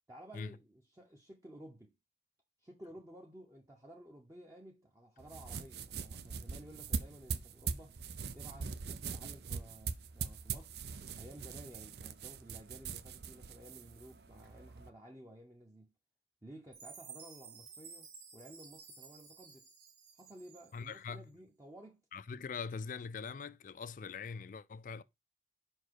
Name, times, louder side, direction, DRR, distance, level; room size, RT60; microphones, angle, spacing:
voice 1, 0.1-1.9 2.6-8.0 8.3-10.8 11.2-15.9 16.4-19.7 20.2-22.0, right 1 dB, 15° right, 0.8 m, -54 dB
sound 1, 5.2-14.9, right 5 dB, 70° right, 0.5 m, -42 dB
Chime, 16.7-21.0, right 6 dB, 85° right, 2.1 m, -54 dB
voice 2, 20.7-21.3 22.1-25.0, left 5 dB, 50° left, 0.4 m, -42 dB
5.4 x 4.5 x 4.6 m
head